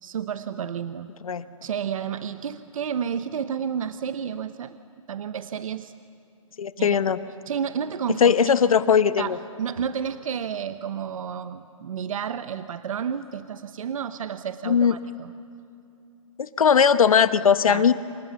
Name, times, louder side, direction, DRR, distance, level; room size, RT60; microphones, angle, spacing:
voice 1, 0.0-1.1 1.6-4.8 5.1-5.9 6.8-7.1 7.5-8.3 9.2-15.3 17.6-17.8, right 8 dB, 75° right, 11 dB, 0.9 m, -31 dB
voice 2, 6.6-7.2 8.2-9.4 14.6-15.0 16.4-17.9, left 7 dB, 90° left, 13 dB, 1.1 m, -19 dB
27.5 x 27.0 x 7.1 m, 2.7 s
hypercardioid pair, 150°, 17 cm